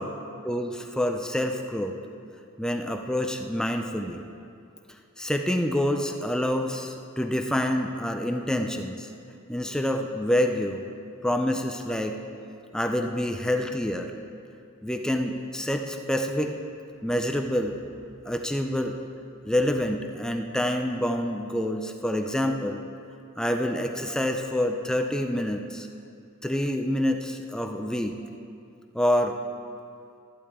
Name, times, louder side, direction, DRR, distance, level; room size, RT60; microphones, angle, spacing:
voice 1, 0.4-2.0 2.6-4.2 5.2-9.1 9.5-10.8 11.2-12.2 12.7-14.1 14.8-16.5 17.0-17.8 18.3-19.0 19.4-22.8 23.4-25.9 26.4-28.2 28.9-29.4, left 1 dB, 5° left, 4 dB, 0.5 m, -27 dB
13.5 x 11.5 x 3.7 m, 2.6 s
head